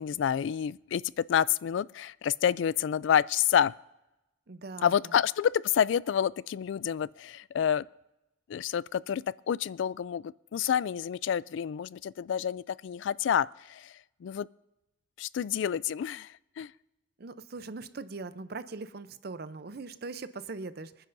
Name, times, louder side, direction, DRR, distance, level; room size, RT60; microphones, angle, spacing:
voice 1, 0.0-3.7 4.8-7.9 8.5-13.9 14.2-14.5 15.2-16.7, left 9 dB, 80° left, 20 dB, 0.3 m, -28 dB
voice 2, 4.5-5.1 17.2-21.1, right 3 dB, 55° right, 13 dB, 0.6 m, -41 dB
26.5 x 9.9 x 2.6 m, 0.93 s
head